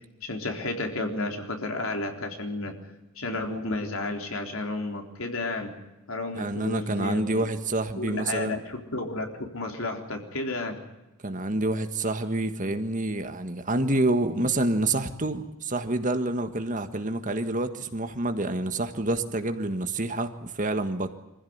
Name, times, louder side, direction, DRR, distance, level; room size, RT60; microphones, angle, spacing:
voice 1, 0.2-2.7 3.2-5.7 6.1-7.4 8.0-9.3 9.5-10.8, left 2 dB, 70° left, 3 dB, 3.7 m, -32 dB
voice 2, 6.3-8.6 11.2-21.2, right 2 dB, 35° right, 8 dB, 1.6 m, -28 dB
24.5 x 15.5 x 9.5 m, 1.0 s
head